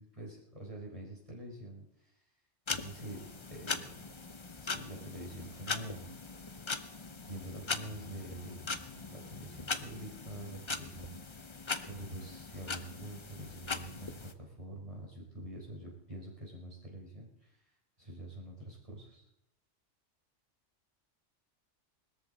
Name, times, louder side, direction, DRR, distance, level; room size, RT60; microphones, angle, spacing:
voice 1, 0.0-1.9 2.7-3.2 3.5-4.1 4.6-6.1 7.2-11.2 11.8-17.5 18.0-19.2, right 1 dB, 30° right, -1 dB, 4.6 m, -46 dB
sound 1, 2.7-14.3, left 4 dB, 30° left, 0.7 m, -41 dB
20.5 x 13.5 x 4.1 m, 0.86 s
omnidirectional pair, 1.2 m